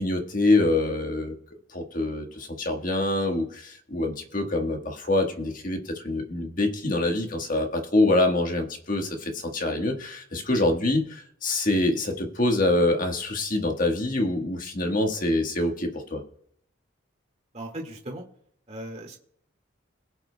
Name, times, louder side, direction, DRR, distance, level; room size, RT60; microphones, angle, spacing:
voice 1, 0.0-1.4 1.7-16.2, left 2 dB, 45° left, 3 dB, 1.5 m, -25 dB
voice 2, 17.5-18.2 18.7-19.2, right 1 dB, 35° right, 1 dB, 2.0 m, -37 dB
21.5 x 8.1 x 2.3 m, 0.67 s
head